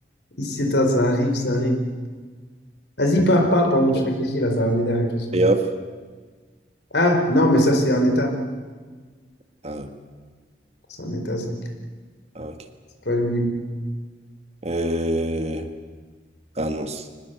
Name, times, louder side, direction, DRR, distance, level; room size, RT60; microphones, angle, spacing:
voice 1, 0.4-1.8 3.0-5.4 6.9-8.3 11.0-11.6 13.1-13.6, equal, 75° left, 4 dB, 4.4 m, -20 dB
voice 2, 5.3-5.7 9.6-9.9 12.4-12.5 14.6-15.7 16.6-17.0, right 1 dB, 40° right, 7 dB, 1.8 m, -24 dB
25.0 x 20.0 x 8.0 m, 1.4 s
head